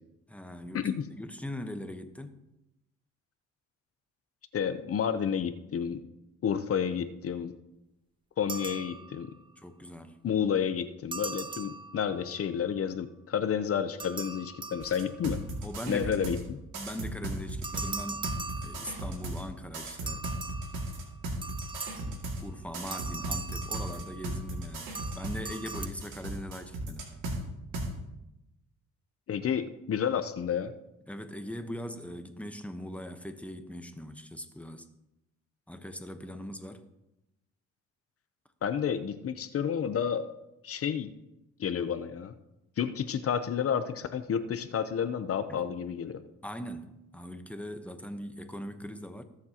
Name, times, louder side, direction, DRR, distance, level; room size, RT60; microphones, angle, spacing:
voice 1, 0.3-0.9 1.2-2.4 9.6-10.2 15.6-16.4 16.7-18.3 18.6-20.3 21.9-27.1 31.1-34.9 35.7-36.9 45.5-45.6 46.4-49.2, equal, 5° left, 1.0 m, -41 dB
voice 2, 4.5-6.0 6.4-7.5 8.4-9.3 10.2-15.4 15.9-16.6 29.3-30.7 38.6-40.3 40.6-41.1 41.6-42.3 42.8-46.2, left 8 dB, 50° left, 0.8 m, -30 dB
sound 1, 8.5-9.4 11.1-12.4 14.0-15.4 17.6-19.3 20.1-22.3 22.9-24.6 24.9-25.9, right 4 dB, 15° right, 0.4 m, -40 dB
sound 2, 14.8-16.4 16.7-19.4 19.7-22.4 22.7-27.4 27.7-27.9, right 2 dB, 90° right, 2.3 m, -36 dB
20.0 x 7.4 x 2.9 m
cardioid pair, 90°, 30 cm